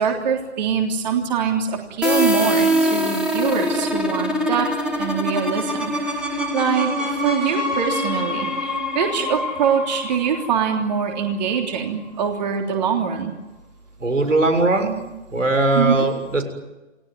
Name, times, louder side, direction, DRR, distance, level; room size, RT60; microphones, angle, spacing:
voice 1, 0.0-4.7 5.0-5.9 6.2-13.3 15.7-16.1, right 7 dB, 35° right, 2 dB, 3.3 m, -23 dB
sound 1, 2.0-11.6, equal, ahead, 2.7 m, -24 dB
voice 2, 14.0-14.9 15.3-16.4, right 2 dB, 85° right, 6 dB, 6.8 m, -19 dB
30.0 x 19.0 x 9.7 m, 1.1 s
figure-of-eight pair, 145°, 37 cm